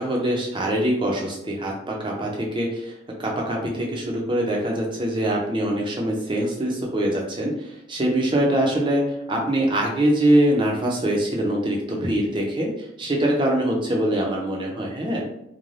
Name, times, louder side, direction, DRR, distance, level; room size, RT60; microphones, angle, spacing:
voice 1, 0.0-2.9 3.2-9.0 9.3-15.2, right 1 dB, 25° right, -1 dB, 0.6 m, -23 dB
2.5 x 2.2 x 3.2 m, 0.80 s
head